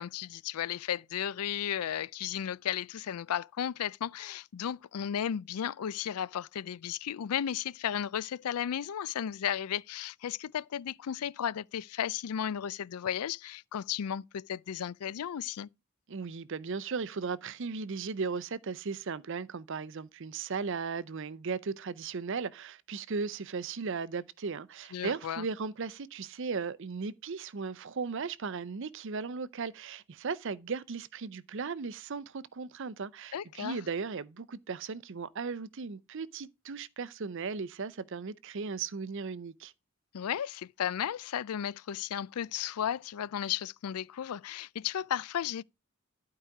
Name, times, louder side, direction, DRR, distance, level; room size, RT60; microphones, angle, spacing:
voice 1, 0.0-15.7 24.9-25.4 33.3-33.8 40.1-45.6, left 9 dB, 80° left, 0.4 m, -34 dB
voice 2, 16.1-39.7, right 5 dB, 55° right, 0.6 m, -36 dB
12.0 x 4.8 x 4.8 m
head